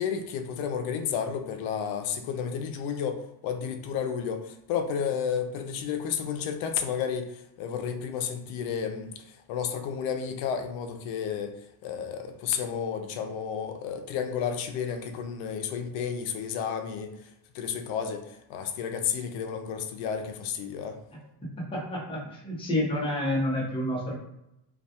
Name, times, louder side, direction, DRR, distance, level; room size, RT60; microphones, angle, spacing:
voice 1, 0.0-3.2 3.4-7.3 7.6-11.5 11.8-17.1 17.5-21.0, left 7 dB, 80° left, 6 dB, 0.5 m, -31 dB
voice 2, 21.6-24.1, left 1 dB, 10° left, -5 dB, 0.6 m, -29 dB
2.3 x 2.2 x 2.8 m, 0.84 s
cardioid pair, 160°, 46 cm